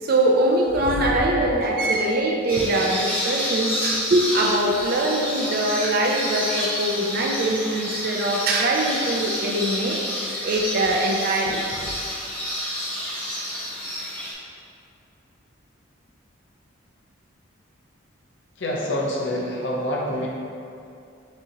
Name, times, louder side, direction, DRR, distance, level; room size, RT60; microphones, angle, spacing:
voice 1, 0.0-11.6, right 1 dB, 45° right, -1 dB, 0.4 m, -22 dB
sound 1, 2.5-14.3, equal, 10° left, 0.7 m, -29 dB
voice 2, 18.6-20.3, left 1 dB, 60° left, -3 dB, 0.7 m, -26 dB
6.0 x 2.8 x 2.9 m, 2.5 s
head